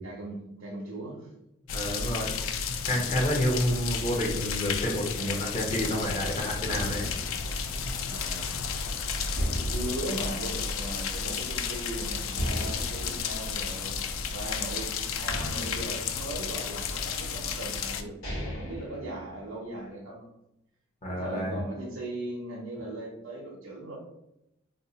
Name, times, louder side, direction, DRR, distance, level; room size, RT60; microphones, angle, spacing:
voice 1, 0.0-1.3 2.9-3.3 8.1-8.5 9.7-14.0 14.3-18.1 18.4-20.3 21.1-24.0, right 1 dB, 85° right, -3 dB, 0.7 m, -38 dB
sound 1, 1.7-18.0, left 6 dB, 75° left, 0.4 m, -32 dB
voice 2, 1.7-2.4 2.8-7.1 21.0-21.6, equal, 35° left, -2 dB, 0.8 m, -29 dB
sound 2, 6.0-8.8 9.3-11.3 11.6-11.7 12.3-14.7 15.3-16.8 17.6-17.7 18.0-19.8, equal, 90° left, 1.1 m, -37 dB
sound 3, 6.0-17.0, equal, 5° right, 0.4 m, -45 dB
2.8 x 2.3 x 3.9 m, 0.86 s
head